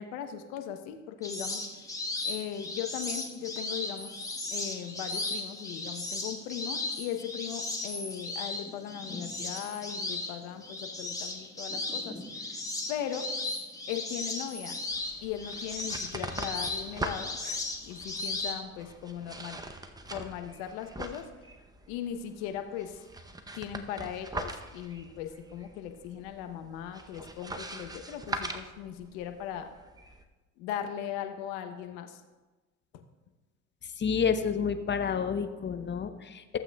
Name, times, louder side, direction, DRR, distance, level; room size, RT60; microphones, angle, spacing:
voice 1, 0.0-1.7 2.2-12.6 12.9-13.3 13.9-14.8 15.2-19.6 20.1-21.3 21.9-23.1 23.5-29.7 30.6-32.2 32.9-33.0, left 9 dB, 70° left, 7 dB, 1.0 m, -38 dB
sound 1, 1.2-18.6, left 2 dB, 10° left, 1.3 m, -36 dB
sound 2, 14.9-30.2, right 2 dB, 10° right, 0.7 m, -42 dB
voice 2, 34.0-36.6, left 6 dB, 25° left, 9 dB, 0.7 m, -29 dB
15.5 x 7.8 x 2.3 m, 1.2 s
hypercardioid pair, 70°, 41 cm